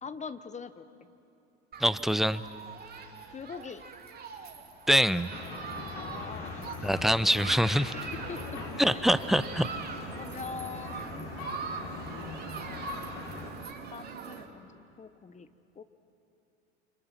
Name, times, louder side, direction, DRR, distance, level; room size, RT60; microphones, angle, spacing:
voice 1, 0.0-1.1 3.3-3.8 6.0-6.7 7.9-8.6 8.9-9.0 10.1-11.2 12.6-13.2 13.9-14.7 15.0-15.5 15.7-15.8, left 5 dB, 20° left, 12 dB, 1.0 m, -43 dB
Human group actions, 1.7-14.4, right 5 dB, 30° right, 2.6 m, -43 dB
voice 2, 1.8-2.4 4.9-5.3 6.8-7.9 8.8-9.7, equal, ahead, 15 dB, 0.6 m, -24 dB
sound 1, 5.3-13.5, left 4 dB, 50° left, 4.3 m, -41 dB
sound 2, 7.9-14.5, right 7 dB, 80° right, 1.8 m, -47 dB
29.5 x 25.5 x 6.0 m, 2.7 s
hypercardioid pair, 90°, 34 cm